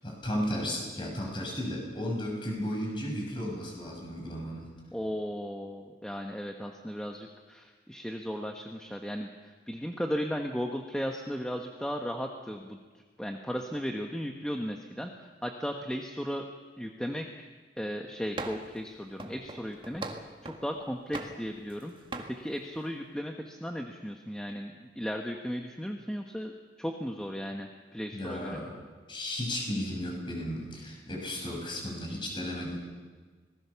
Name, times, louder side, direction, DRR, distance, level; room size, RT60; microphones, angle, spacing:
voice 1, 0.0-4.7 28.1-28.7 29.1-32.8, equal, 25° left, 0 dB, 6.3 m, -34 dB
voice 2, 4.9-12.8 13.2-16.5 16.8-17.5 17.8-21.9 22.3-28.6, equal, 5° left, 2 dB, 1.2 m, -36 dB
sound 1, 18.4-18.8 19.2-20.7 21.1-21.8 22.1-22.4, right 2 dB, 30° right, 1.8 m, -40 dB
26.0 x 19.0 x 7.0 m, 1.4 s
head